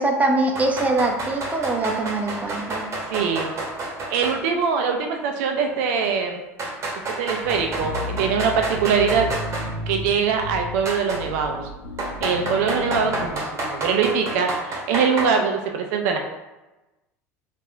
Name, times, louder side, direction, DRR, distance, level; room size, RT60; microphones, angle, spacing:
voice 1, 0.0-2.9, right 2 dB, 20° right, 1 dB, 0.6 m, -23 dB
sound 1, 0.5-4.4 4.7-4.8 5.6-5.7 6.6-9.7 10.8-11.2 12.0-15.2, right 2 dB, 35° right, 1.0 m, -29 dB
voice 2, 3.1-3.5 4.1-6.4 7.2-9.3 9.6-11.6 12.2-13.4 13.7-16.2, right 6 dB, 70° right, 3 dB, 0.4 m, -23 dB
sound 2, 7.4-13.4, left 2 dB, 70° left, 0.7 m, -33 dB
3.5 x 2.4 x 3.3 m, 1.1 s
hypercardioid pair, 80°, 8 cm